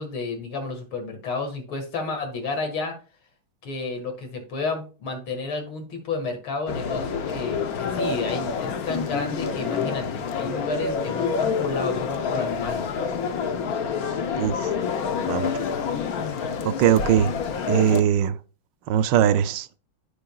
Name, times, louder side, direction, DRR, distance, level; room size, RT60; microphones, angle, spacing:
voice 1, 0.0-3.0 3.6-12.9, left 3 dB, 75° left, 2.6 m, -31 dB
sound 1, 6.7-18.0, left 6 dB, 60° left, 1.0 m, -27 dB
voice 2, 16.6-17.3 17.7-18.3 18.9-19.8, right 10 dB, 75° right, 1.1 m, -20 dB
13.0 x 5.4 x 2.3 m
omnidirectional pair, 2.3 m